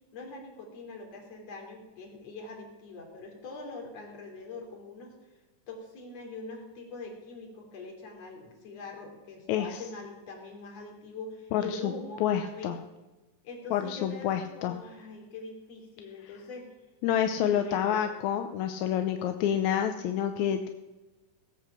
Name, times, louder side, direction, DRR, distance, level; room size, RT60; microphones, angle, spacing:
voice 1, 0.1-5.1 5.7-12.8 13.4-16.7 17.4-18.0, left 3 dB, 50° left, 0 dB, 3.9 m, -43 dB
voice 2, 9.5-9.8 11.5-11.9 12.2-12.8 13.7-14.8 17.0-20.7, left 9 dB, 75° left, 7 dB, 1.9 m, -28 dB
18.0 x 7.8 x 6.7 m, 1.1 s
omnidirectional pair, 3.7 m